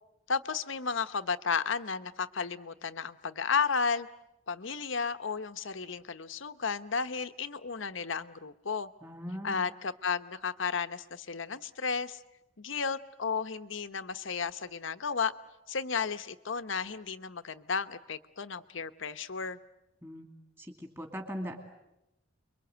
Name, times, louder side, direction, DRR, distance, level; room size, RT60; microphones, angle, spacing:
voice 1, 0.3-4.1 4.5-8.9 9.4-12.2 12.6-15.3 15.7-19.6, left 5 dB, 65° left, 11 dB, 1.0 m, -33 dB
voice 2, 9.0-9.7 20.0-20.3 20.6-21.6, equal, 10° right, 3 dB, 2.6 m, -40 dB
29.5 x 23.0 x 8.0 m, 0.89 s
head